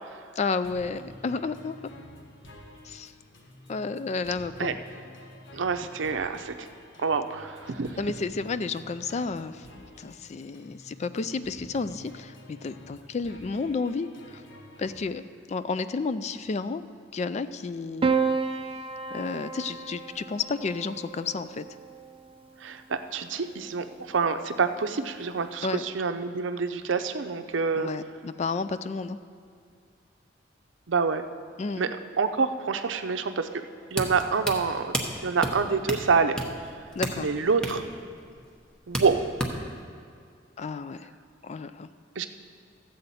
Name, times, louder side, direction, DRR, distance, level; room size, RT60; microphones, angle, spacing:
voice 1, 0.4-1.9 2.8-3.1 3.7-4.8 8.0-14.4 14.8-15.2 15.5-16.8 17.1-18.1 19.1-21.7 25.6-25.8 27.7-29.2 31.6-31.9 37.0-37.3 40.6-41.1 41.4-41.9, left 4 dB, 35° left, 13 dB, 0.3 m, -31 dB
sound 1, 0.6-15.0, left 1 dB, 85° left, 1.3 m, -49 dB
voice 2, 5.5-6.5 7.0-8.0 22.6-27.9 30.9-31.2 31.8-31.9 32.2-33.5 33.9-35.0 35.2-36.4 37.2-37.8 38.9-39.2 42.2-42.3, right 5 dB, 80° right, 8 dB, 0.6 m, -27 dB
Piano, 18.0-22.5 23.7-24.4, right 5 dB, 30° right, 0.4 m, -31 dB
sound 2, 33.9-39.8, equal, 5° left, 1.0 m, -34 dB
14.5 x 7.8 x 4.2 m, 2.2 s
head